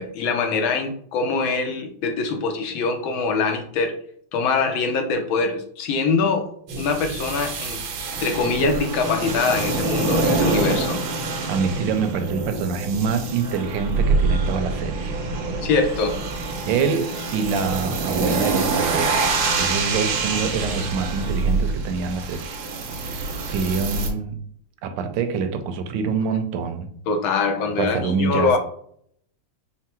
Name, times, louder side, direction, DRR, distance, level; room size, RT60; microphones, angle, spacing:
voice 1, 0.0-3.9 4.3-6.5 6.8-7.8 8.2-11.0 15.6-16.2 27.1-28.6, left 4 dB, 80° left, 1.5 m, -23 dB
sound 1, 6.7-24.1, right 3 dB, 90° right, 1.6 m, -25 dB
voice 2, 11.5-15.2 16.6-19.3 19.6-22.6 23.0-24.4 24.8-26.9 27.8-28.6, right 5 dB, 75° right, 1.3 m, -26 dB
4.6 x 2.1 x 4.3 m
omnidirectional pair, 2.2 m